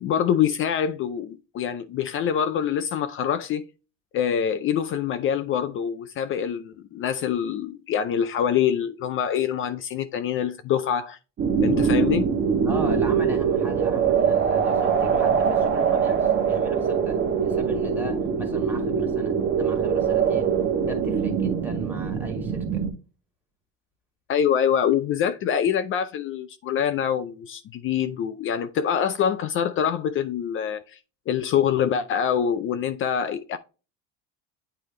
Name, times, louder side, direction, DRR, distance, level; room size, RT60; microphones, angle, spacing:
voice 1, 0.0-3.6 4.1-11.2 11.6-12.3 24.3-31.0 31.3-33.6, left 8 dB, 45° left, 0.5 m, -25 dB
sound 1, 11.4-22.9, right 6 dB, 40° right, 1.0 m, -23 dB
voice 2, 12.6-20.5 20.8-22.8, right 2 dB, 5° right, 1.8 m, -37 dB
8.8 x 3.3 x 3.2 m
cardioid pair, 130°, 30 cm